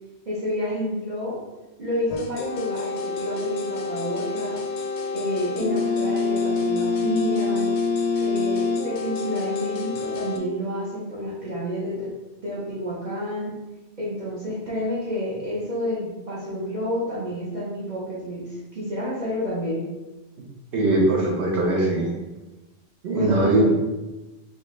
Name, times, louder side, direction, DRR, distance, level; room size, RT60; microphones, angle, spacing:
voice 1, 0.2-1.4 1.8-4.6 5.1-7.8 8.2-12.1 12.4-13.5 14.0-19.9 23.1-23.7, equal, 40° right, -8 dB, 0.9 m, -29 dB
sound 1, 2.1-10.4, left 4 dB, 70° left, 0.8 m, -26 dB
voice 2, 20.7-22.1 23.0-23.7, right 2 dB, 65° right, -2 dB, 1.1 m, -20 dB
4.8 x 2.3 x 3.1 m, 1.1 s
omnidirectional pair, 1.3 m